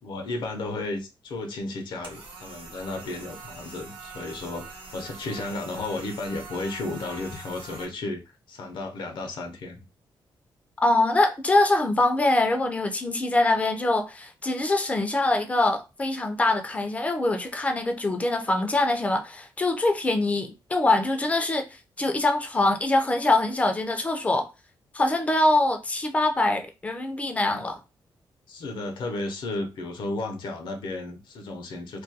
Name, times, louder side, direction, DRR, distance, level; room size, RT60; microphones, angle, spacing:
voice 1, 0.0-8.2 8.5-9.8 28.5-32.0, left 2 dB, 65° left, 0.5 m, -33 dB
sound 1, 2.0-7.8, right 4 dB, 75° right, 0.8 m, -43 dB
voice 2, 10.8-24.5 24.9-27.8, left 2 dB, 15° left, 0.3 m, -24 dB
2.3 x 2.2 x 2.6 m
wide cardioid pair, 170°, 8 cm